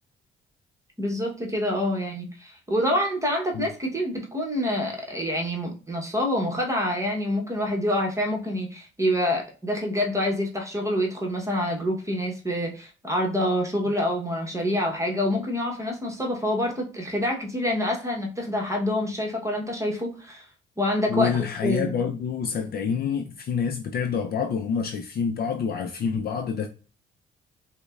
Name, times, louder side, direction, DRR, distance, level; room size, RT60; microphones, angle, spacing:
voice 1, 1.0-20.4 20.8-21.3 21.6-22.1, left 1 dB, 15° right, 1.0 m, -27 dB
voice 2, 21.1-26.7, left 6 dB, 50° left, 0.4 m, -27 dB
5.1 x 2.1 x 2.4 m
cardioid pair, 90°, 20 cm